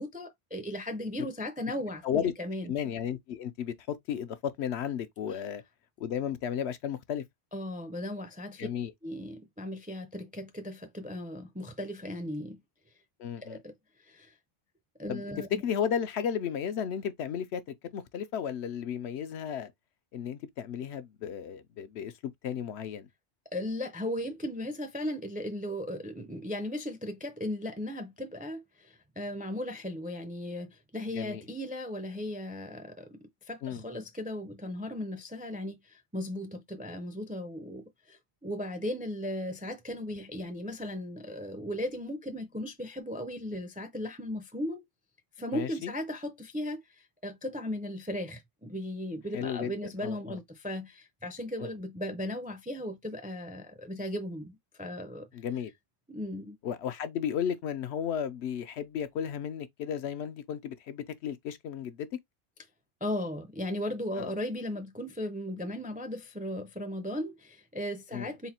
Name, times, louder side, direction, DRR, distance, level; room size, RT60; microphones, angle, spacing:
voice 1, 0.0-2.7 5.3-5.4 7.5-8.7 9.0-12.6 13.4-13.7 14.0-14.3 15.0-15.6 23.5-33.2 33.5-44.8 45.4-55.3 56.1-56.6 63.0-68.5, left 1 dB, 10° right, 0.4 m, -37 dB
voice 2, 2.6-5.6 6.0-7.2 8.6-8.9 13.2-13.6 15.1-15.2 15.5-19.7 20.1-22.1 22.4-23.1 31.1-31.4 33.6-33.8 45.5-45.9 49.3-49.7 50.0-50.4 51.6-51.7 55.3-55.7 56.6-62.1 64.2-64.3 68.1-68.3, left 8 dB, 70° left, 0.8 m, -34 dB
4.0 x 2.1 x 4.2 m
omnidirectional pair, 1.2 m